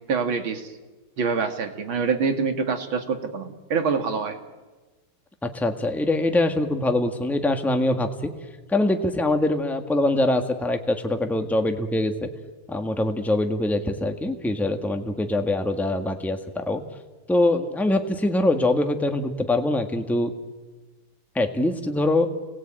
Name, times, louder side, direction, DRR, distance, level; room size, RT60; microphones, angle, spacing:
voice 1, 0.1-0.7 1.2-4.4, right 5 dB, 70° right, 6 dB, 2.8 m, -25 dB
voice 2, 5.4-8.3 8.7-12.3 12.7-16.8 17.3-20.3 21.3-22.3, left 2 dB, ahead, 5 dB, 1.4 m, -23 dB
29.5 x 19.5 x 9.0 m, 1.3 s
omnidirectional pair, 2.3 m